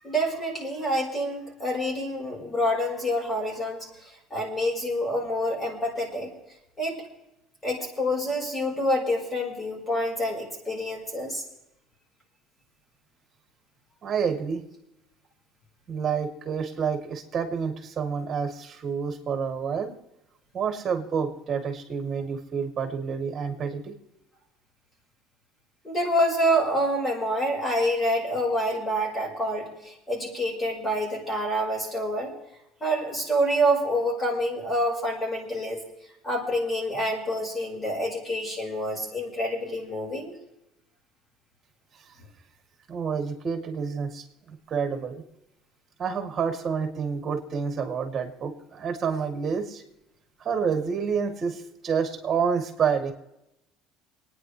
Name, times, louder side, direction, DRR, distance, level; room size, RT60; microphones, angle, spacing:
voice 1, 0.0-6.3 6.8-7.0 7.6-11.4 25.8-32.3 32.8-35.8 36.2-40.3, equal, 20° left, -1 dB, 5.2 m, -27 dB
voice 2, 14.0-14.6 15.9-19.9 20.5-23.9 42.9-45.2 46.0-49.8 50.4-53.1, right 6 dB, 35° right, 4 dB, 2.8 m, -28 dB
29.0 x 10.0 x 3.3 m, 0.88 s
cardioid pair, 125°, 0 cm